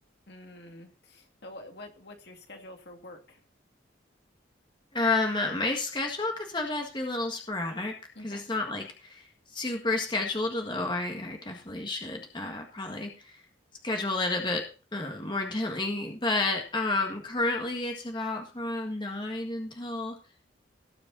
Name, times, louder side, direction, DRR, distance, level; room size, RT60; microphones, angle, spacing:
voice 1, 0.3-3.4 8.2-8.4, left 1 dB, 60° left, 3 dB, 2.3 m, -47 dB
voice 2, 4.9-7.9 8.2-13.4 13.8-20.2, left 2 dB, 25° left, 2 dB, 1.7 m, -31 dB
18.0 x 6.7 x 4.0 m, 0.36 s
head